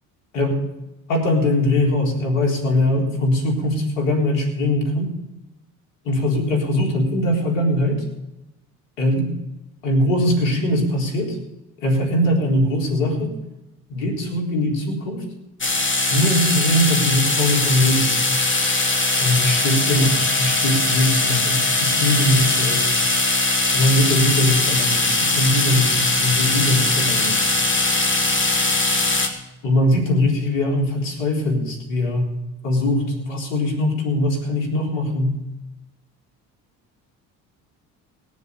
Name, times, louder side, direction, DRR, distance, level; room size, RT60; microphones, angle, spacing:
voice 1, 1.1-5.2 6.1-8.0 9.0-9.3 9.8-11.4 11.8-13.4 13.9-15.2 16.1-18.2 19.2-20.1 20.4-23.0 23.7-27.4 29.6-32.3 32.6-35.4, left 1 dB, 80° left, 1 dB, 4.0 m, -21 dB
sound 1, 15.6-29.3, left 2 dB, 25° left, 2.9 m, -20 dB
19.0 x 7.2 x 8.2 m, 0.95 s
hypercardioid pair, 65°, 43 cm